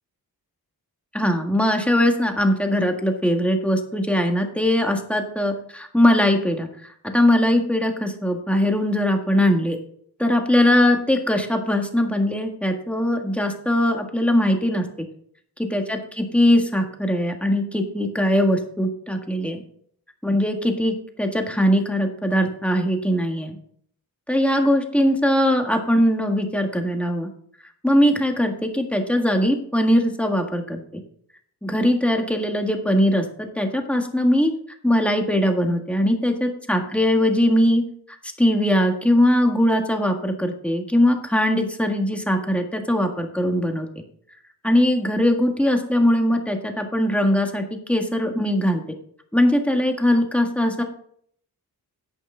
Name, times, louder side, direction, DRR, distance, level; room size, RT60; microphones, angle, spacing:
voice 1, 1.1-6.7 7.0-9.8 10.2-14.8 15.6-19.6 20.2-23.5 24.3-27.3 27.8-31.0 31.6-33.2 33.5-34.5 34.8-37.8 38.4-43.9 44.6-48.8 49.3-50.8, left 1 dB, 5° left, 3 dB, 1.7 m, -20 dB
10.5 x 8.6 x 3.8 m, 0.63 s
wide cardioid pair, 95°, 38 cm